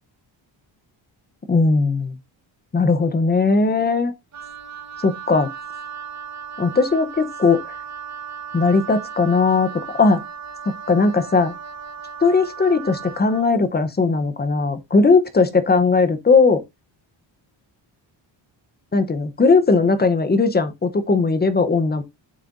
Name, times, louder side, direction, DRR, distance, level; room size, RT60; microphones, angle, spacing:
voice 1, 1.5-2.2 2.7-4.1 5.0-5.5 6.6-7.7 8.5-10.2 10.9-11.5 12.2-16.6 18.9-22.0, left 4 dB, 20° left, 0.8 m, -18 dB
Wind instrument woodwind instrument, 4.3-13.5, right 7 dB, 35° right, 1.3 m, -36 dB
9.0 x 6.6 x 2.6 m
cardioid pair, 140°, 46 cm